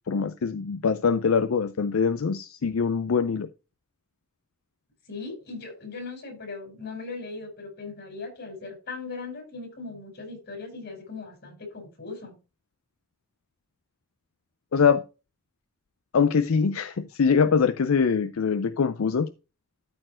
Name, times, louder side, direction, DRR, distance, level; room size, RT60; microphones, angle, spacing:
voice 1, 0.1-3.5 14.7-15.0 16.1-19.3, left 5 dB, 85° left, 13 dB, 0.5 m, -23 dB
voice 2, 5.1-12.3, left 3 dB, 55° left, 3 dB, 5.1 m, -38 dB
13.0 x 4.4 x 4.4 m, 0.30 s
head